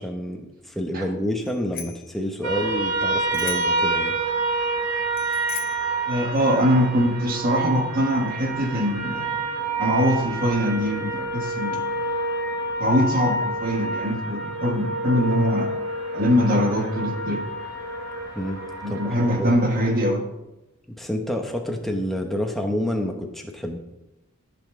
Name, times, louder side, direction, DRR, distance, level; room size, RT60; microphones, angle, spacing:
voice 1, 0.0-4.2 18.3-18.6 18.9-19.0 19.4-19.5 20.9-23.8, equal, ahead, 1 dB, 1.0 m, -28 dB
Bicycle bell, 1.4-2.1 3.3-3.9 5.1-5.9, left 8 dB, 45° left, 0.9 m, -36 dB
sound 1, 2.4-19.4, right 2 dB, 90° right, 2.3 m, -28 dB
voice 2, 6.1-9.4 9.8-11.9 12.8-15.7 16.1-17.4 18.8-20.3, equal, 40° right, 1 dB, 1.5 m, -22 dB
14.0 x 5.9 x 3.7 m, 0.96 s
head